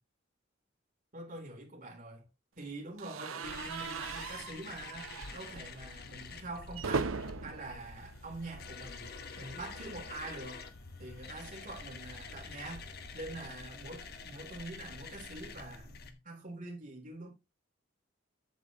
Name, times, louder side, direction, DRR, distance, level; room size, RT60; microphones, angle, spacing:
voice 1, 1.1-2.3 2.6-7.1 7.4-9.1 9.4-10.7 11.0-12.9 13.1-17.3, right 2 dB, 40° right, 3.3 m, -45 dB
sound 1, 3.0-9.0 9.3-9.5 9.8-9.9 11.1-13.5, right 4 dB, 90° right, 0.7 m, -41 dB
sound 2, 3.4-16.1, left 4 dB, 50° left, 1.1 m, -47 dB
8.2 x 8.1 x 3.0 m
head